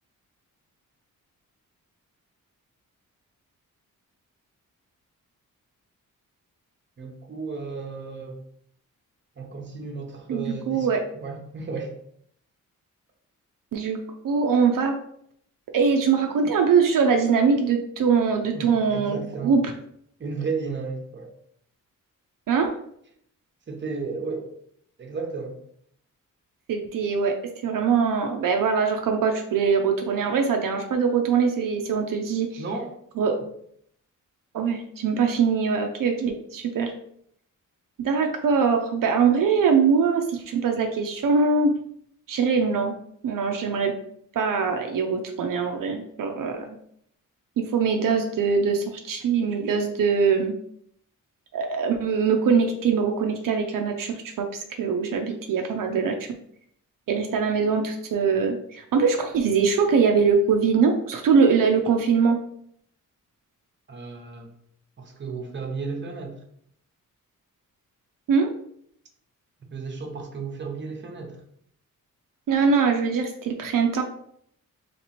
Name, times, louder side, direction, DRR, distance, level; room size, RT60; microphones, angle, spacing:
voice 1, 7.0-8.4 9.4-10.9 11.1-12.0 18.5-19.6 20.2-21.3 23.7-24.5 25.0-25.6 32.6-32.9 63.9-64.5 65.0-66.4 69.7-71.4, right 4 dB, 35° right, 2 dB, 0.8 m, -33 dB
voice 2, 10.3-11.0 13.7-14.0 14.2-14.9 15.7-19.6 22.5-22.7 26.7-27.3 27.6-32.6 33.2-33.4 34.5-36.9 38.0-41.7 42.3-43.0 43.2-43.9 44.4-46.8 47.6-50.5 51.5-56.3 57.1-62.4 68.3-68.5 72.5-74.0, right 5 dB, 80° right, 3 dB, 0.5 m, -22 dB
3.2 x 2.9 x 4.1 m, 0.68 s
wide cardioid pair, 130°, 33 cm